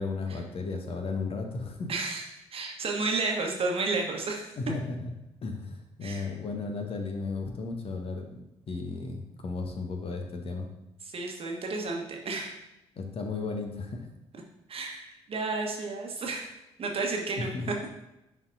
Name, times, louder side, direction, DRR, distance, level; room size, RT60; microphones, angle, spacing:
voice 1, 0.0-1.9 4.6-5.1 5.4-10.7 13.0-14.1 17.5-17.6, left 3 dB, 40° left, 4 dB, 1.0 m, -34 dB
voice 2, 1.9-4.5 6.0-6.3 11.0-12.6 14.7-17.5, right 3 dB, 40° right, 1 dB, 1.3 m, -32 dB
10.5 x 4.3 x 2.7 m, 0.89 s
figure-of-eight pair, 40°, 14 cm